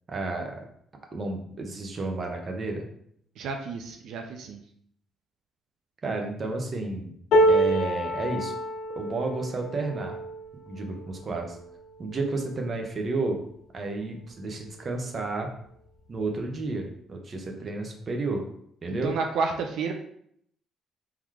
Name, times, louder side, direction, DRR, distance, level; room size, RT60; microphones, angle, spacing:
voice 1, 0.1-0.6 1.1-2.8 6.0-7.1 7.5-8.5 9.0-10.2 10.7-11.6 12.0-13.4 13.7-15.5 16.1-18.4 18.8-19.1, right 2 dB, 30° right, 2 dB, 0.8 m, -31 dB
voice 2, 3.4-4.6 17.6-17.7 18.9-19.9, right 5 dB, 75° right, 4 dB, 0.5 m, -31 dB
sound 1, 7.3-13.5 14.0-14.2 14.5-15.3 16.3-16.4, right 1 dB, 70° left, 0.9 m, -28 dB
3.8 x 2.9 x 4.7 m, 0.68 s
cardioid pair, 170°, 0 cm